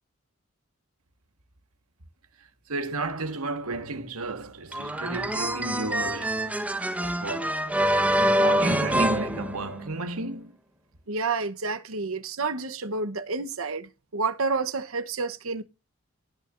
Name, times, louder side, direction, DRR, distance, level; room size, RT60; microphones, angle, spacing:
voice 1, 2.7-6.4 7.0-7.5 8.2-10.5, right 2 dB, 80° right, 1.6 m, -32 dB
sound 1, 4.7-10.1, equal, 5° right, 1.2 m, -26 dB
voice 2, 11.1-15.6, right 4 dB, 65° right, 1.1 m, -29 dB
18.0 x 6.8 x 2.6 m
head